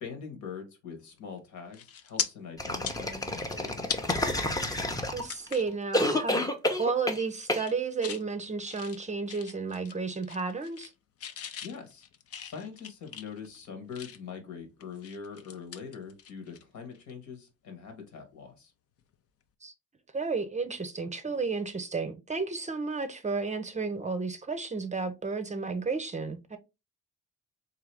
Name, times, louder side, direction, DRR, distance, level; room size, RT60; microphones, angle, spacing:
voice 1, 0.0-3.9 11.6-12.0 12.4-18.7, left 6 dB, 70° left, 1.4 m, -43 dB
sound 1, 1.2-1.4 1.7-2.3 2.7-4.2 4.6-4.7 5.2-5.7 6.2-6.4 6.7-7.1 7.5-8.2 8.6-10.0 10.2-10.9 11.2-14.4 14.8-16.6 16.9-17.1 19.0-19.1, left 8 dB, 50° left, 0.6 m, -39 dB
sound 2, 2.6-5.5 5.9-7.2 7.5-7.7, left 1 dB, 10° left, 0.7 m, -29 dB
voice 2, 5.1-6.4 6.8-10.9 19.6-19.7 20.1-26.6, right 4 dB, 25° right, 0.6 m, -32 dB
3.7 x 2.8 x 3.3 m
cardioid pair, 90°, 30 cm